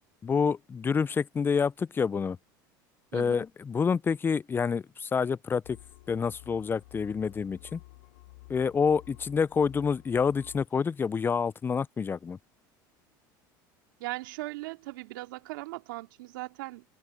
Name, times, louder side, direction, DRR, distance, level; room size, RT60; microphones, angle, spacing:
voice 1, 0.2-2.4 3.1-5.8 6.1-7.8 8.5-12.4, left 6 dB, 20° left, 0.4 m, -28 dB
voice 2, 3.1-3.4 14.0-16.8, right 20 dB, 80° right, 2.7 m, -39 dB
sound 1, 5.6-10.7, left 21 dB, 80° left, 3.4 m, -52 dB
supercardioid pair, 95°, 11 cm